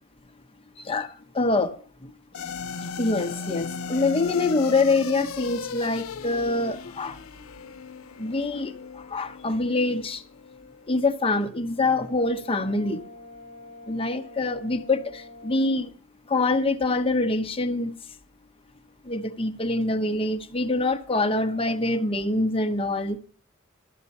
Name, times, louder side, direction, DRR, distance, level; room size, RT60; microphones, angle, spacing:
voice 1, 0.8-1.8 2.0-2.1 2.4-2.5 2.8-7.2 8.2-10.2 10.9-13.0 13.9-15.9 16.3-17.9 19.0-23.2, left 2 dB, 25° left, 0.9 m, -25 dB
sound 1, 2.3-10.9, left 5 dB, 85° left, 0.7 m, -37 dB
Brass instrument, 11.7-15.8, left 2 dB, 80° right, 5.6 m, -46 dB
12.5 x 8.1 x 5.5 m
head